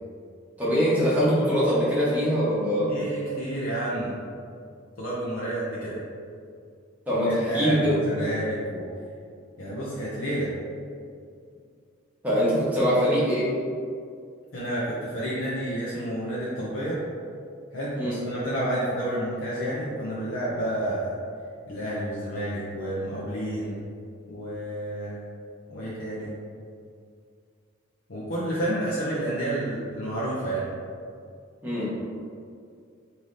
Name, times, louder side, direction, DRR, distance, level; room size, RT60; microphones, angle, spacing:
voice 1, 0.6-2.9 7.1-8.0 12.2-13.5 18.0-18.2 31.6-31.9, equal, 10° right, -9 dB, 1.0 m, -23 dB
voice 2, 2.9-4.1 5.0-6.0 7.1-8.8 9.6-10.5 14.5-17.0 17.7-21.2 21.7-23.8 24.3-25.2 25.7-26.3 28.1-30.7, right 1 dB, 80° left, -8 dB, 0.7 m, -30 dB
3.2 x 2.7 x 3.8 m, 2.3 s
head